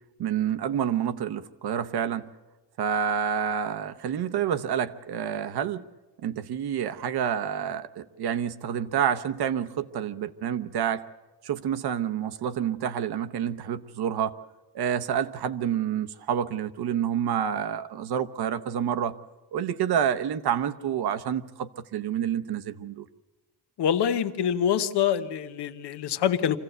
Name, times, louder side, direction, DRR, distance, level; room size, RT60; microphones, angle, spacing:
voice 1, 0.2-2.2 2.8-5.8 6.2-11.0 11.4-14.3 14.7-19.2 19.5-23.1, right 8 dB, 70° right, 11 dB, 1.0 m, -28 dB
voice 2, 23.8-26.6, left 9 dB, 75° left, 10 dB, 1.1 m, -25 dB
25.0 x 16.0 x 7.9 m, 1.2 s
wide cardioid pair, 170°, 40 cm